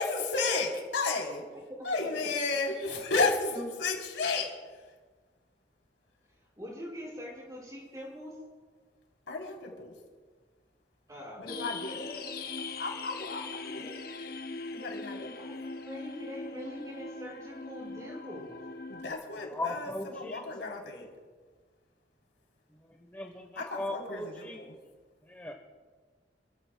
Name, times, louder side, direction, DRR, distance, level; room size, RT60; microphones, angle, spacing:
voice 1, 0.0-1.4 1.8-4.5 9.3-9.9 11.4-12.3 12.8-14.0 14.7-15.5 18.9-21.1 23.6-24.7, left 3 dB, 85° left, 0 dB, 3.7 m, -33 dB
voice 2, 6.6-8.3 11.1-11.4 15.5-15.6 15.8-18.5, equal, 20° right, -4 dB, 5.9 m, -43 dB
sound 1, 11.5-19.1, left 3 dB, 50° left, 0.8 m, -41 dB
voice 3, 19.5-20.4 22.8-24.6 25.2-25.5, left 2 dB, 10° left, 1 dB, 1.1 m, -38 dB
28.5 x 15.5 x 2.3 m, 1.5 s
head